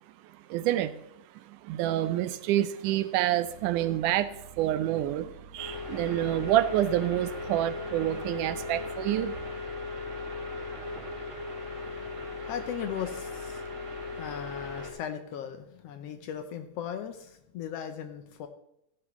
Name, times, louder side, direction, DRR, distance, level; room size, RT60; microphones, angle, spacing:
voice 1, 0.5-0.9 1.4-9.4, right 13 dB, 85° right, 13 dB, 2.2 m, -28 dB
sound 1, 3.4-8.9, right 7 dB, 70° right, 2.0 m, -51 dB
sound 2, 5.6-14.9, left 3 dB, 25° right, 2.5 m, -37 dB
voice 2, 12.4-13.6 14.2-18.5, left 8 dB, 75° left, 8 dB, 1.4 m, -37 dB
14.5 x 11.0 x 3.1 m, 0.79 s
omnidirectional pair, 3.6 m